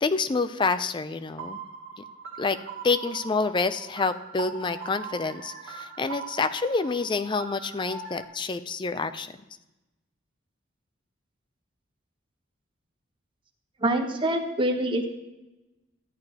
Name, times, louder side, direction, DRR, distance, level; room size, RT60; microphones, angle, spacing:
voice 1, 0.0-1.6 2.4-2.6 2.8-9.3, left 4 dB, 25° left, 12 dB, 0.4 m, -27 dB
sound 1, 1.4-8.2, right 5 dB, 70° right, 1.7 m, -41 dB
voice 2, 13.8-15.1, right 1 dB, 25° right, 2 dB, 1.0 m, -25 dB
13.5 x 10.5 x 2.9 m, 1.0 s
head